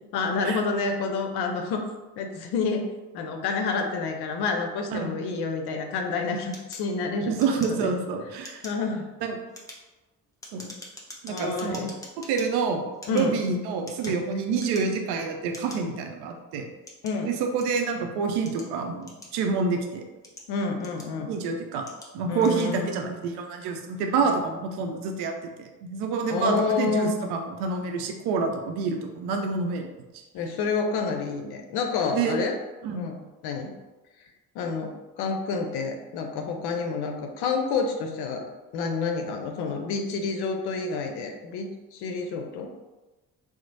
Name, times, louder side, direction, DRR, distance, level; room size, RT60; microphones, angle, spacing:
voice 1, 0.1-1.8 2.2-2.9 3.1-7.3 7.7-7.9 8.6-9.1 11.3-11.9 13.1-13.3 14.1-14.2 17.0-17.3 20.5-21.3 22.3-23.1 26.3-27.1 30.3-32.5 32.9-33.7 34.5-38.5 38.7-42.7, left 4 dB, 55° left, 4 dB, 0.6 m, -29 dB
sound 1, 6.5-8.1 8.4-8.9 9.4-12.5 12.9-14.3 14.6-15.1 15.5-15.8 16.5-17.9 18.5-19.6 20.1-21.3 21.8-22.1 22.4-22.7, left 1 dB, 5° left, 0.7 m, -45 dB
voice 2, 7.3-8.6 9.2-9.4 10.5-10.7 11.2-11.8 12.3-16.7 17.2-20.0 21.3-21.9 22.1-25.3 25.6-29.9 32.1-32.4 32.8-33.0, right 4 dB, 55° right, 4 dB, 0.6 m, -27 dB
3.0 x 2.0 x 3.9 m, 1.1 s
figure-of-eight pair, 45°, 48 cm